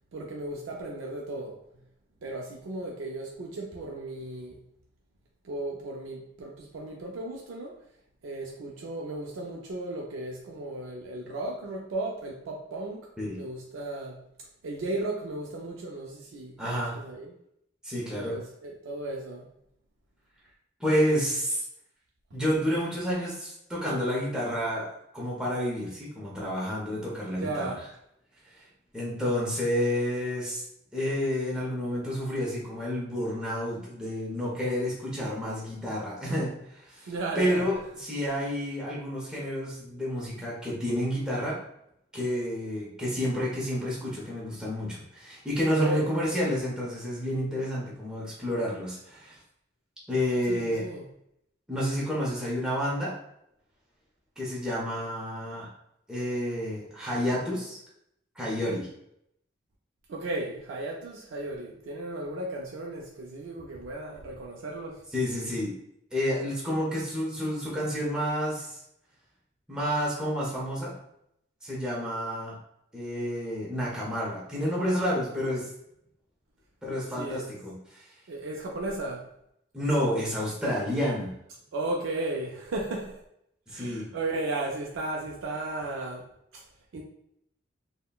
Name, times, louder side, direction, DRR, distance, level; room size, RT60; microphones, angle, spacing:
voice 1, 0.1-1.6 2.2-4.6 5.4-7.7 8.2-13.1 13.3-14.2 14.6-17.3 18.1-19.5 27.3-27.9 37.1-37.7 45.7-46.1 50.5-51.1 60.1-65.0 77.2-77.4 78.3-79.3 81.7-83.2 83.7-86.2 86.5-86.6 86.9-87.0, right 2 dB, 85° right, -1 dB, 0.4 m, -35 dB
voice 2, 16.6-17.0 17.8-18.4 20.8-21.6 22.3-27.7 28.6-28.7 28.9-30.6 30.9-41.6 42.1-49.4 50.1-50.8 51.7-53.1 54.4-55.7 56.1-57.8 58.4-58.9 65.1-65.7 66.1-68.8 69.7-70.9 71.6-72.6 72.9-75.7 76.8-78.1 79.7-81.3 83.7-84.1, equal, 5° right, -6 dB, 0.6 m, -30 dB
3.6 x 2.1 x 2.3 m, 0.76 s
head